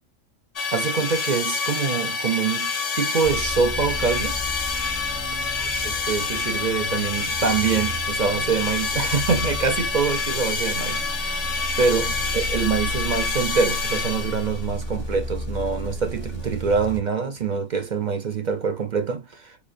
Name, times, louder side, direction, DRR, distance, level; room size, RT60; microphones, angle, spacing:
sound 1, 0.6-14.7, left 4 dB, 45° left, 0.5 m, -27 dB
voice 1, 0.7-4.4 5.8-11.5 11.8-19.6, right 5 dB, 50° right, 0.5 m, -25 dB
sound 2, 3.2-17.0, equal, 65° left, 2.5 m, -33 dB
6.9 x 2.3 x 2.5 m
omnidirectional pair, 1.3 m